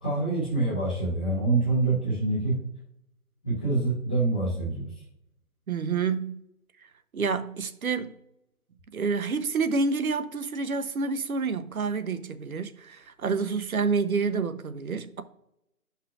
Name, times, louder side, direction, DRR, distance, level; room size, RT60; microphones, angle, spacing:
voice 1, 0.0-2.6 3.4-4.9, right 2 dB, 5° left, 0.6 m, -26 dB
voice 2, 5.7-6.4 7.1-8.2 8.9-15.2, right 4 dB, 70° right, 0.9 m, -28 dB
10.5 x 5.6 x 2.5 m
figure-of-eight pair, 155°, 44 cm